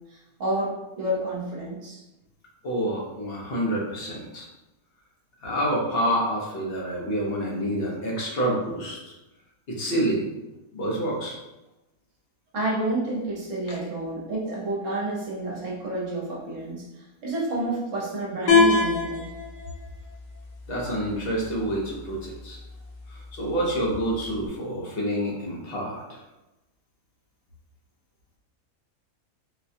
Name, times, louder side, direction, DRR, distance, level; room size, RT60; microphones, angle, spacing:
voice 1, 0.1-2.0 12.5-19.3, right 2 dB, 55° right, -4 dB, 1.2 m, -29 dB
voice 2, 2.6-4.5 5.4-9.1 9.7-10.3 10.7-11.4 20.7-22.6 23.1-26.2, right 1 dB, 45° left, -3 dB, 1.0 m, -28 dB
sound 1, 18.5-24.5, left 4 dB, 80° left, 0.4 m, -27 dB
4.1 x 2.3 x 2.7 m, 0.99 s
omnidirectional pair, 1.6 m